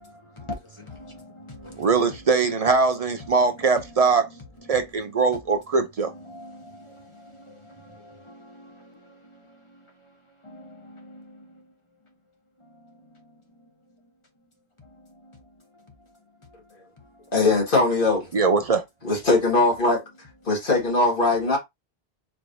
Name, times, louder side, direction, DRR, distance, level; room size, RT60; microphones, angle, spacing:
voice 1, 0.9-1.9 6.3-9.4 9.7-9.8 10.4-11.3, left 2 dB, 30° left, 1.1 m, -43 dB
voice 2, 1.8-4.3 4.7-6.1 18.3-18.8, right 4 dB, 45° right, 0.5 m, -21 dB
voice 3, 17.3-18.3 19.0-20.0 20.5-21.6, left 2 dB, 60° left, 2.0 m, -20 dB
4.6 x 3.1 x 2.6 m
omnidirectional pair, 1.0 m